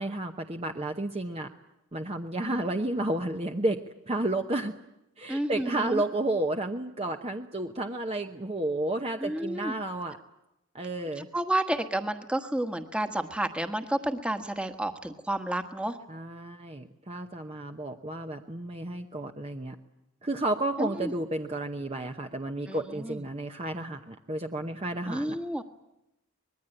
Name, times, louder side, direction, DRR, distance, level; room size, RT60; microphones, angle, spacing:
voice 1, 0.0-1.5 1.9-3.8 4.1-4.7 5.2-10.2 10.7-11.3 16.1-19.8 20.2-25.4, right 1 dB, 25° right, 5 dB, 0.9 m, -31 dB
voice 2, 5.3-6.0 9.2-9.7 11.2-16.0 20.8-21.1 22.7-23.2 25.1-25.6, right 1 dB, 5° right, 7 dB, 1.3 m, -31 dB
25.0 x 21.0 x 9.0 m, 0.88 s
head